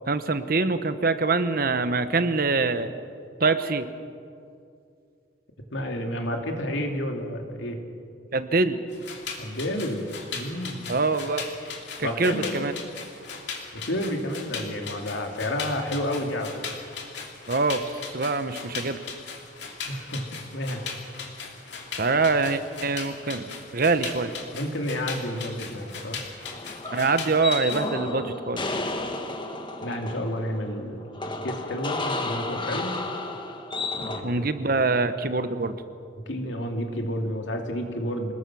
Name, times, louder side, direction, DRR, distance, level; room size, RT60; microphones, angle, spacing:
voice 1, 0.1-2.9 3.4-3.9 8.3-8.8 10.9-11.4 12.0-12.7 17.5-17.8 18.1-19.0 22.0-24.3 26.9-28.6 34.2-35.8, right 3 dB, 50° right, 11 dB, 1.1 m, -24 dB
voice 2, 5.7-7.8 9.4-11.0 12.0-12.6 13.7-16.5 19.9-20.3 20.5-20.9 24.5-26.2 29.8-31.1 31.4-33.0 33.9-35.0 36.3-38.3, equal, 90° left, 3 dB, 2.9 m, -30 dB
sound 1, 8.9-27.9, left 5 dB, 65° left, 2.8 m, -38 dB
sound 2, 26.5-34.2, left 2 dB, 25° left, 1.6 m, -32 dB
27.0 x 20.0 x 6.2 m, 2.4 s
head